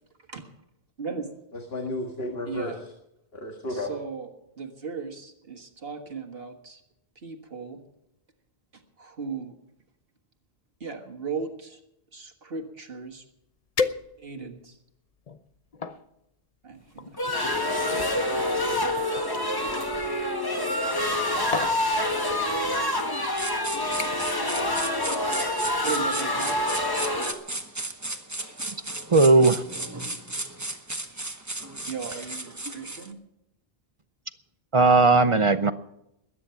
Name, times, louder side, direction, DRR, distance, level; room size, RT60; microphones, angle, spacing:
voice 1, 1.0-1.3 2.5-2.8 3.7-4.3 4.6-6.8 7.1-7.8 8.7-9.5 10.8-11.8 12.1-13.2 14.2-14.8 16.6-18.1 24.8-25.3 25.8-26.6 30.5-30.8 31.8-33.2, right 5 dB, 60° right, 3 dB, 1.8 m, -37 dB
voice 2, 1.5-2.9 3.3-3.9, left 1 dB, 65° left, 2 dB, 2.0 m, -33 dB
sound 1, 13.1-13.2 13.8-14.5 15.1-16.0 17.0-19.9 21.0-21.2 21.5-21.8 22.7-22.9 23.3-23.6 24.0-24.4 24.7-25.1 25.4-25.5, left 4 dB, 40° left, 0.8 m, -34 dB
sound 2, 17.2-27.3, left 1 dB, 20° left, 1.4 m, -27 dB
sound 3, 23.4-33.1, right 2 dB, 15° right, 1.1 m, -35 dB
voice 3, 29.1-29.6 34.7-35.7, right 3 dB, 35° right, 12 dB, 0.6 m, -17 dB
21.0 x 9.7 x 5.7 m, 0.83 s
omnidirectional pair, 1.1 m